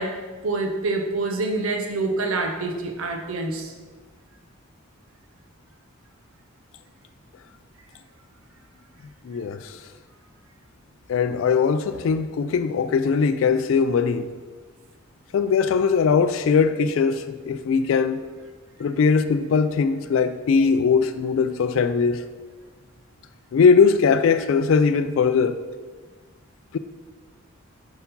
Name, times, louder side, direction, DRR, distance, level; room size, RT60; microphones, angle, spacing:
voice 1, 0.0-3.7, right 3 dB, 90° right, 0.7 m, -26 dB
voice 2, 9.2-9.6 11.1-14.3 15.3-18.2 18.8-22.2 23.5-25.6 26.7-26.8, left 5 dB, 70° left, 0.3 m, -20 dB
5.7 x 4.4 x 5.3 m
head